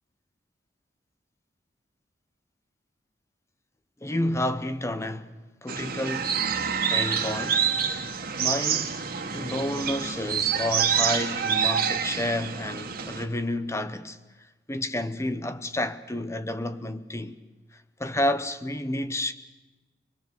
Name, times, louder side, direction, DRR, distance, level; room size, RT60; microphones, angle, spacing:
voice 1, 4.0-5.3 5.6-6.4 6.9-7.7 8.4-9.0 9.3-14.2 14.7-17.4 18.0-19.3, left 1 dB, 15° left, 1.0 m, -30 dB
sound 1, 5.7-13.2, right 7 dB, 55° right, 1.9 m, -27 dB
23.5 x 22.0 x 7.2 m
head